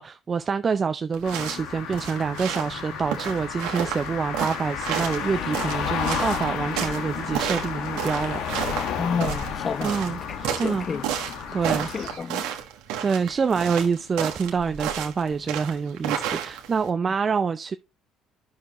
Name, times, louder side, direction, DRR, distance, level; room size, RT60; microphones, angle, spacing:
voice 1, 0.0-8.4 9.8-10.9 11.5-11.9 13.0-17.8, right 5 dB, 35° right, 0.4 m, -26 dB
sound 1, 1.1-16.9, right 9 dB, 80° right, 1.4 m, -32 dB
sound 2, 1.2-12.2, left 7 dB, 75° left, 1.3 m, -32 dB
voice 2, 9.0-10.0 10.3-11.1 11.7-12.5, left 5 dB, 40° left, 0.7 m, -30 dB
9.4 x 6.6 x 3.0 m
supercardioid pair, 80°, 0 cm